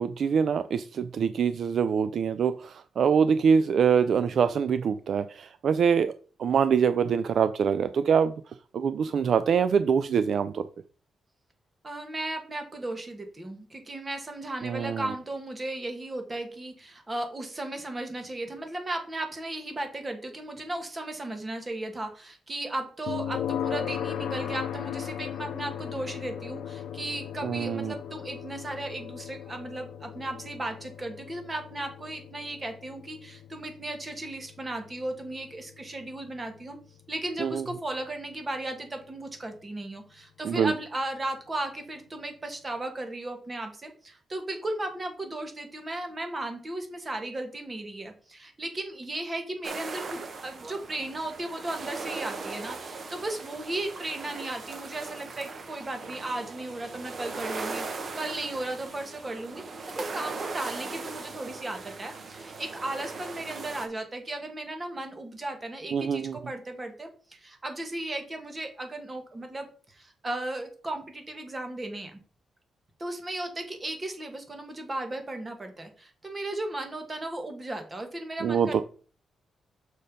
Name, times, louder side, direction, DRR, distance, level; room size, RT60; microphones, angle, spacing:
voice 1, 0.0-6.1 6.4-8.3 8.7-10.6 14.6-15.1 27.4-27.9 37.4-37.6 40.4-40.7 65.9-66.4 78.4-78.8, right 7 dB, 50° right, 12 dB, 0.3 m, -24 dB
voice 2, 11.8-36.8 37.1-72.2 73.0-78.8, right 2 dB, 20° right, 5 dB, 1.3 m, -36 dB
sound 1, 23.1-38.0, left 9 dB, 75° left, 0.5 m, -37 dB
sound 2, 49.6-63.9, right 4 dB, 35° right, 1.0 m, -39 dB
6.4 x 4.2 x 5.2 m, 0.41 s
wide cardioid pair, 165°, 0 cm